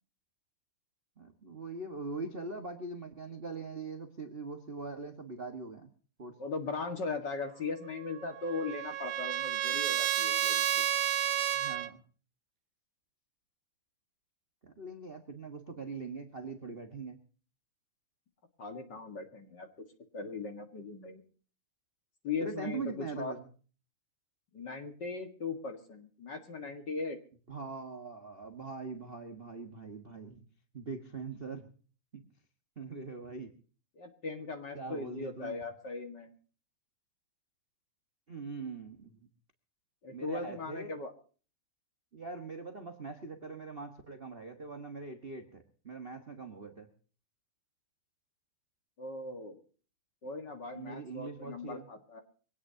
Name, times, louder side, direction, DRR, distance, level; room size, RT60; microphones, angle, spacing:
voice 1, 1.2-5.9 6.2-6.3 11.5-12.0 14.6-17.2 22.4-23.5 27.5-30.4 30.7-31.7 32.1-32.2 32.8-33.5 34.7-35.6 38.3-39.3 40.1-41.0 42.1-46.9 50.7-51.9, right 4 dB, 40° right, 4 dB, 0.8 m, -42 dB
voice 2, 6.4-10.8 18.6-19.7 20.1-21.2 22.2-23.3 24.5-27.2 34.0-36.3 40.0-41.1 49.0-49.6 50.2-52.2, left 4 dB, 40° left, 5 dB, 2.0 m, -39 dB
Trumpet, 8.0-11.9, right 11 dB, 75° right, 1.3 m, -31 dB
23.5 x 18.0 x 2.8 m, 0.41 s
omnidirectional pair, 3.6 m